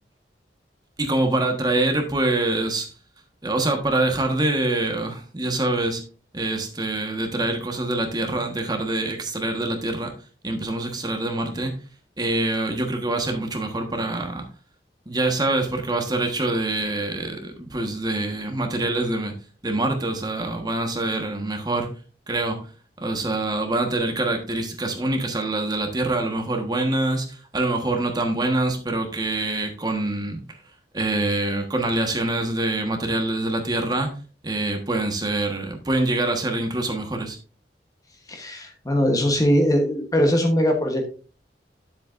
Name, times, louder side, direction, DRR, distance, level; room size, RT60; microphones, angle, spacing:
voice 1, 1.0-2.9 3.4-6.0 6.3-10.1 10.4-11.7 12.2-14.4 15.1-19.3 19.6-21.9 22.3-22.6 23.0-30.4 30.9-34.1 34.4-37.4, right 2 dB, 25° right, 1.3 m, -25 dB
voice 2, 38.3-41.1, equal, 20° left, 1.1 m, -21 dB
10.0 x 7.5 x 2.5 m
head